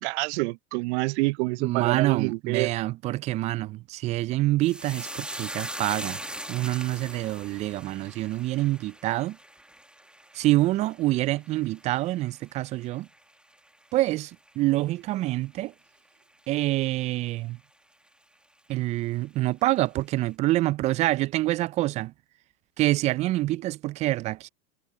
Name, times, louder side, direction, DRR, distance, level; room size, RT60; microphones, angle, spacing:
voice 1, 0.0-2.7, right 26 dB, 50° right, 0.7 m, -27 dB
voice 2, 1.6-6.2 6.5-9.4 10.3-13.1 13.9-15.7 16.5-17.6 18.7-22.1 22.8-24.5, right 17 dB, 20° right, 0.3 m, -26 dB
sound 1, 4.6-13.2 13.5-14.2 14.5-14.7, right 1 dB, ahead, 1.9 m, -41 dB
hypercardioid pair, 90°, 45 cm